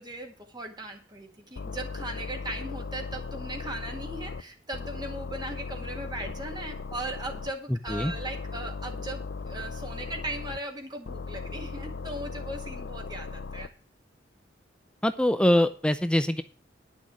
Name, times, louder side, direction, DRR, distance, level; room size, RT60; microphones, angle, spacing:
voice 1, 0.0-13.7, right 1 dB, 25° right, 3 dB, 1.8 m, -38 dB
sound 1, 1.6-4.4 4.7-7.5 7.9-10.6 11.1-13.7, left 4 dB, 70° left, 0.6 m, -37 dB
voice 2, 15.0-16.4, left 1 dB, 5° left, 11 dB, 0.5 m, -23 dB
10.5 x 6.3 x 7.3 m, 0.39 s
head